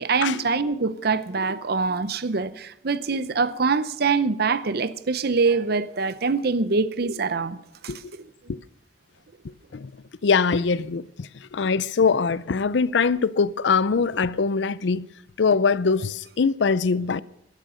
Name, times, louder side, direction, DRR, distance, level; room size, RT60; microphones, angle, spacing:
voice 1, 0.0-7.9, right 4 dB, 55° right, 0.7 m, -24 dB
voice 2, 10.2-15.1 15.4-17.2, left 5 dB, 70° left, 0.5 m, -22 dB
13.0 x 12.5 x 6.4 m
head